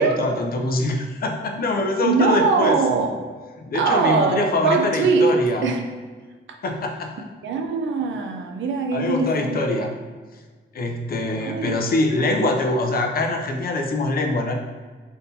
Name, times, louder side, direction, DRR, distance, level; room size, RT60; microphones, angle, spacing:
voice 1, 0.0-2.8 3.7-5.7 6.6-7.2 8.9-9.9 10.7-14.6, left 2 dB, 50° left, 3 dB, 0.4 m, -23 dB
voice 2, 2.0-3.2 3.7-5.3 5.6-5.8 6.5-6.6 7.4-9.6 11.4-11.8, right 4 dB, 75° right, 4 dB, 0.4 m, -21 dB
3.6 x 2.7 x 2.6 m, 1.4 s
wide cardioid pair, 160°, 20 cm